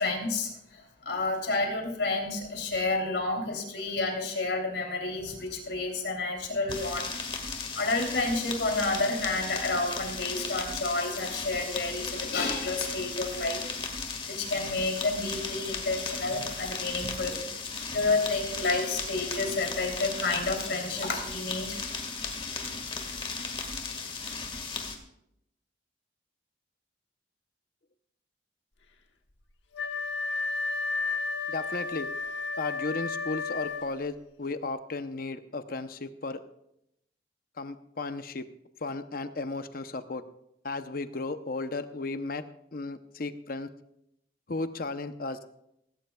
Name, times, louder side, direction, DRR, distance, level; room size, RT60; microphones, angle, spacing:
voice 1, 0.0-7.1 7.7-13.6 14.2-17.4 17.9-21.8 22.6-23.0 24.4-24.6, left 3 dB, 70° left, 2 dB, 3.2 m, -30 dB
sound 1, 6.7-24.9, left 4 dB, 30° left, 1.8 m, -36 dB
Mechanisms, 15.2-22.0 22.2-24.0, left 2 dB, 5° left, 2.9 m, -46 dB
Wind instrument woodwind instrument, 29.7-34.2, left 4 dB, 85° left, 1.4 m, -32 dB
voice 2, 31.5-32.1 32.6-36.4 37.6-38.4 38.8-40.2 40.6-42.4 42.7-43.7 44.5-45.4, left 3 dB, 50° left, 10 dB, 0.8 m, -34 dB
17.5 x 16.5 x 2.3 m, 0.79 s
head